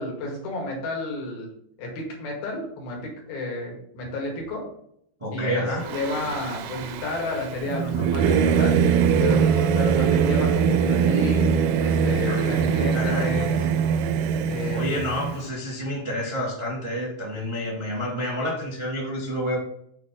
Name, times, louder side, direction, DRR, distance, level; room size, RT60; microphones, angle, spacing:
voice 1, 0.0-1.5 1.8-3.0 3.3-4.6 5.3-8.8 9.2-13.5 14.5-14.9, left 2 dB, 70° left, -1 dB, 3.7 m, -31 dB
voice 2, 5.2-6.0 12.2-12.4 12.9-13.3 14.7-19.6, equal, 15° right, -4 dB, 1.2 m, -29 dB
Singing / Musical instrument, 5.8-15.4, right 7 dB, 80° right, 2.5 m, -22 dB
8.0 x 4.5 x 3.7 m, 0.70 s
omnidirectional pair, 4.4 m